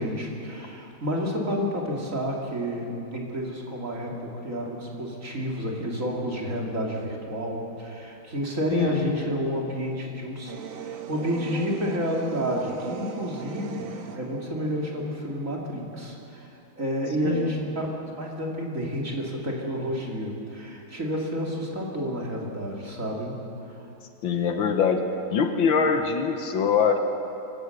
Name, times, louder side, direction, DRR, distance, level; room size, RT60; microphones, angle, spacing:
voice 1, 0.0-10.5 10.8-17.9 18.2-23.9, equal, 35° right, -1 dB, 2.9 m, -30 dB
voice 2, 8.7-9.2 17.2-17.6 24.2-25.0 25.3-27.0, left 6 dB, 70° left, 6 dB, 1.8 m, -23 dB
sound 1, 10.5-15.4, right 8 dB, 70° right, 1.8 m, -39 dB
23.5 x 16.5 x 6.6 m, 2.7 s
omnidirectional pair, 2.4 m